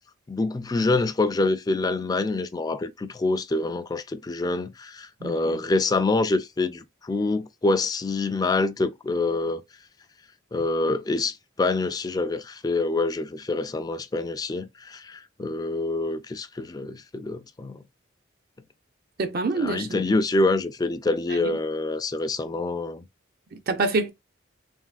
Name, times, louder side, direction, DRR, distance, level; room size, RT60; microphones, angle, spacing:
voice 1, 0.3-9.6 10.5-17.8 19.6-23.1, left 2 dB, 20° left, 0.3 m, -26 dB
voice 2, 5.2-5.6 19.2-20.0 21.3-21.5 23.5-24.1, right 3 dB, 50° right, 0.5 m, -27 dB
3.4 x 2.4 x 2.4 m
head